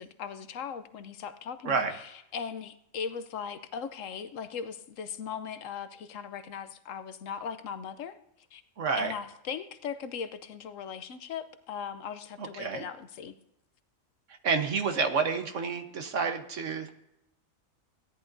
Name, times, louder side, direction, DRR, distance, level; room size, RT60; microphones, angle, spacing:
voice 1, 0.0-8.2 8.5-8.6 8.9-13.3, left 7 dB, 70° left, 11 dB, 1.1 m, -39 dB
voice 2, 8.8-9.1 12.4-12.8 14.4-16.9, right 5 dB, 65° right, 6 dB, 1.4 m, -29 dB
17.0 x 10.5 x 2.6 m, 0.82 s
omnidirectional pair, 1.4 m